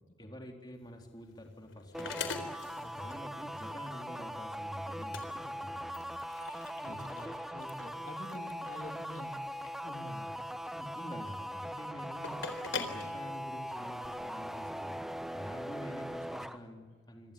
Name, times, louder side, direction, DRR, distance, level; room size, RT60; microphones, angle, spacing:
voice 1, 0.2-2.5 2.9-6.3 6.8-7.1 10.7-15.0 15.3-17.3, equal, 20° left, 2 dB, 3.8 m, -47 dB
sound 1, 0.8-14.1, left 5 dB, 80° left, 3.9 m, -45 dB
sound 2, 1.9-16.6, equal, ahead, 1.0 m, -41 dB
voice 2, 6.8-9.4 9.8-10.3, left 1 dB, 40° left, 2 dB, 3.3 m, -46 dB
26.5 x 26.0 x 8.7 m, 1.4 s
head